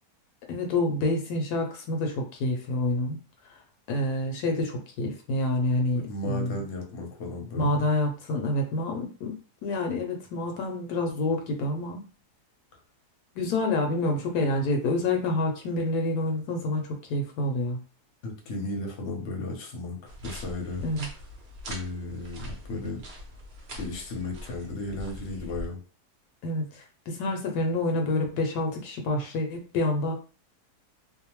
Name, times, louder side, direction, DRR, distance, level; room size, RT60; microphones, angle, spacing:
voice 1, 0.5-3.2 3.9-6.6 7.5-9.3 9.6-12.0 13.4-17.8 20.8-21.1 26.4-30.1, left 2 dB, 75° left, 2 dB, 1.1 m, -28 dB
voice 2, 6.1-7.8 18.2-20.8 21.7-23.0 23.8-25.8, left 2 dB, 55° left, 1 dB, 0.9 m, -35 dB
sound 1, 20.1-25.7, equal, 60° right, 0.7 m, -42 dB
2.7 x 2.1 x 2.9 m, 0.37 s
omnidirectional pair, 1.7 m